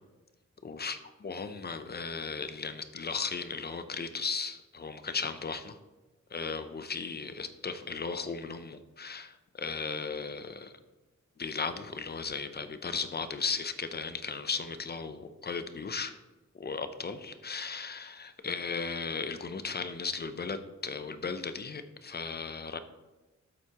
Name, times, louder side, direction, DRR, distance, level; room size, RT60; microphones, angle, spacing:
voice 1, 0.6-5.8 6.3-10.7 11.4-16.1 16.5-22.8, left 5 dB, 35° left, 10 dB, 0.5 m, -36 dB
12.5 x 7.9 x 2.9 m, 1.2 s
wide cardioid pair, 175°, 29 cm